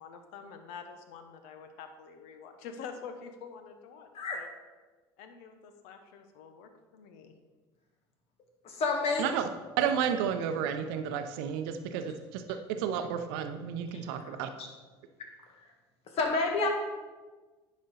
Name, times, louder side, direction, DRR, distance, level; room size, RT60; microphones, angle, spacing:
voice 1, 0.0-4.1 4.3-4.5 5.2-7.4, left 6 dB, 65° left, 7 dB, 1.0 m, -47 dB
voice 2, 8.6-9.3 13.9-14.7 15.6-15.7 16.1-16.7, left 3 dB, 50° left, 2 dB, 1.7 m, -30 dB
voice 3, 9.8-14.5, right 8 dB, 70° right, 8 dB, 0.7 m, -32 dB
9.7 x 5.3 x 4.1 m, 1.3 s
hypercardioid pair, 70°, 13 cm